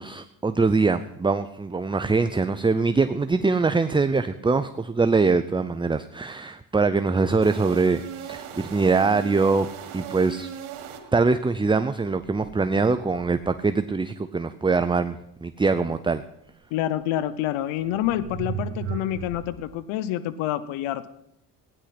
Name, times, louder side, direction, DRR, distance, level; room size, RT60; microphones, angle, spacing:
voice 1, 0.0-9.7 9.9-10.5 11.1-16.2, right 4 dB, 10° right, 11 dB, 0.6 m, -23 dB
sound 1, 7.4-11.5, right 9 dB, 90° right, 1.8 m, -38 dB
sound 2, 12.1-13.7 16.8-16.9 17.8-19.7, right 8 dB, 70° right, 1.8 m, -37 dB
voice 2, 16.7-21.1, left 12 dB, 80° left, 15 dB, 0.9 m, -27 dB
16.0 x 10.0 x 5.9 m, 0.81 s
supercardioid pair, 75°, 46 cm